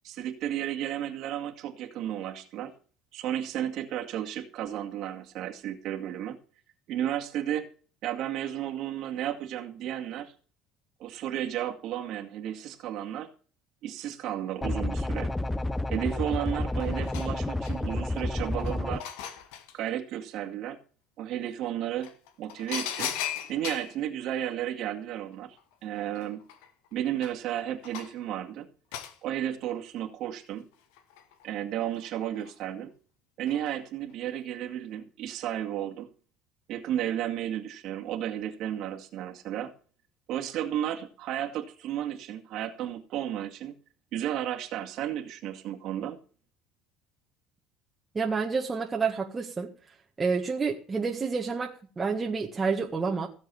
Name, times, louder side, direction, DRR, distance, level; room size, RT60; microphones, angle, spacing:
voice 1, 0.0-2.7 3.1-6.4 6.9-7.7 8.0-10.3 11.0-13.3 13.8-15.3 15.9-19.1 19.7-20.8 21.2-22.1 22.4-23.1 23.5-26.4 26.9-28.7 29.2-30.6 31.4-32.9 33.4-36.1 36.7-39.7 40.3-43.7 44.1-46.2, right 11 dB, 60° right, 4 dB, 2.2 m, -33 dB
sound 1, 14.6-19.0, left 2 dB, 10° left, 0.6 m, -30 dB
sound 2, 16.4-16.5 16.8-18.0 18.5-19.8 21.4-21.5 22.0-24.0 25.6-25.7 25.9-28.3 28.9-29.2 30.7-31.5 32.0-32.5 33.5-33.8 34.1-34.2, left 10 dB, 85° left, 1.9 m, -38 dB
voice 2, 48.1-49.7 50.2-53.3, right 5 dB, 20° right, 0 dB, 1.7 m, -29 dB
16.5 x 7.5 x 7.0 m, 0.40 s
cardioid pair, 130°, 0 cm